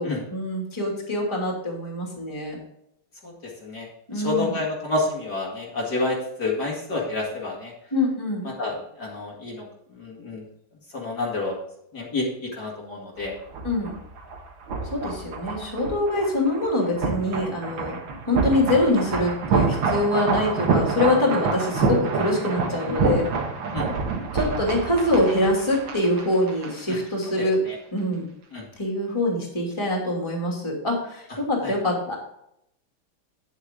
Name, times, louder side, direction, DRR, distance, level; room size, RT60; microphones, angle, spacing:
voice 1, 0.0-2.6 4.1-4.6 7.9-8.5 13.6-13.9 14.9-18.0 18.2-23.3 24.3-27.6 27.9-28.3 28.8-32.2, left 1 dB, 15° left, -1 dB, 2.7 m, -24 dB
voice 2, 4.1-7.7 8.4-9.6 9.9-10.4 10.9-11.6 11.9-13.3 23.7-23.9 26.9-27.0 27.4-27.8 28.5-28.6 31.6-31.7, left 2 dB, 50° left, -3 dB, 2.8 m, -29 dB
sound 1, 13.2-27.0 27.2-27.4, right 4 dB, 70° right, 2.2 m, -27 dB
10.0 x 8.3 x 3.8 m, 0.76 s
omnidirectional pair, 2.3 m